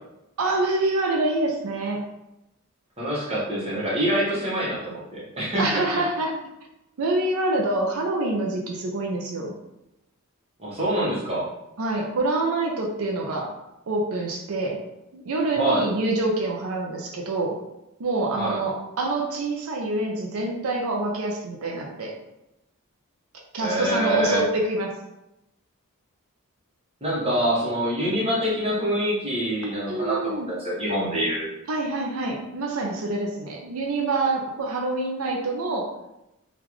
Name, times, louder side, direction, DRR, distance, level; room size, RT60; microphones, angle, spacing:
voice 1, 0.4-2.0 5.6-6.3 7.0-9.5 11.8-13.5 13.9-14.8 15.1-17.6 18.0-22.1 23.5-24.9 29.9-30.5 31.7-35.9, right 2 dB, 80° right, 0 dB, 0.5 m, -26 dB
voice 2, 3.0-5.8 10.6-11.5 15.6-15.9 18.3-18.6 23.6-24.4 27.0-31.5, right 1 dB, 30° right, -6 dB, 1.0 m, -25 dB
3.7 x 2.4 x 3.0 m, 0.90 s
head